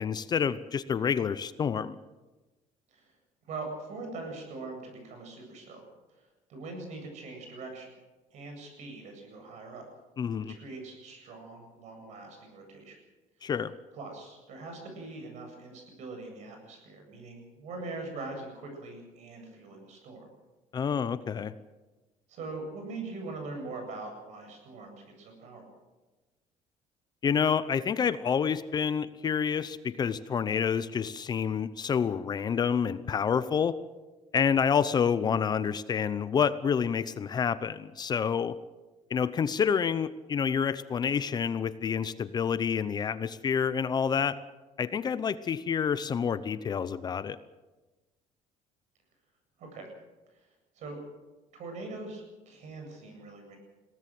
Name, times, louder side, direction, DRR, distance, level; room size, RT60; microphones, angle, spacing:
voice 1, 0.0-2.0 10.2-10.5 13.4-13.7 20.7-21.5 27.2-33.8 34.3-38.5 39.1-44.4 44.8-47.4, left 7 dB, 30° left, 14 dB, 0.7 m, -28 dB
voice 2, 3.4-5.9 6.1-7.9 8.3-9.9 10.4-13.0 13.4-13.5 13.9-20.3 22.3-25.6 49.6-49.9 50.4-50.5 50.7-51.0 51.5-53.6, right 3 dB, 60° right, 4 dB, 8.0 m, -42 dB
22.0 x 17.5 x 7.7 m, 1.2 s
cardioid pair, 150°, 13 cm